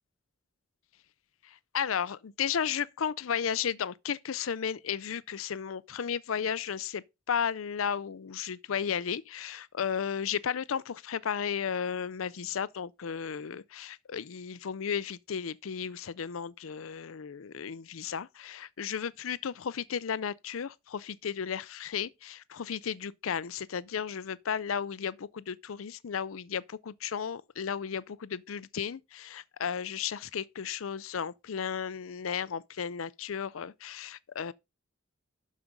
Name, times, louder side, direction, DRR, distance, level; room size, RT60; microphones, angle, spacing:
voice 1, 1.7-34.5, left 7 dB, 90° left, 0.5 m, -34 dB
12.0 x 5.1 x 5.3 m
head